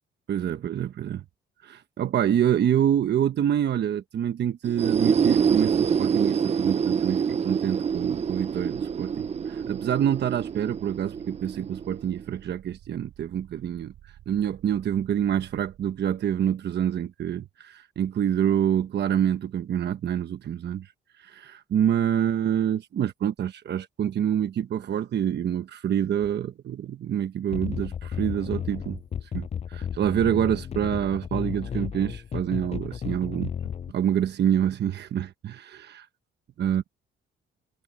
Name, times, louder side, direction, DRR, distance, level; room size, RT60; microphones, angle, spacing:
voice 1, 0.3-1.2 1.6-13.9 14.3-20.9 21.2-33.5 33.9-36.1 36.6-36.8, right 9 dB, 60° right, 1.1 m, -27 dB
sound 1, 4.6-12.3, right 7 dB, 35° right, 0.6 m, -26 dB
sound 2, 7.8-16.5, right 12 dB, 80° right, 3.0 m, -51 dB
sound 3, 27.5-33.9, left 8 dB, 35° left, 0.5 m, -33 dB
cardioid pair, 90°, 20 cm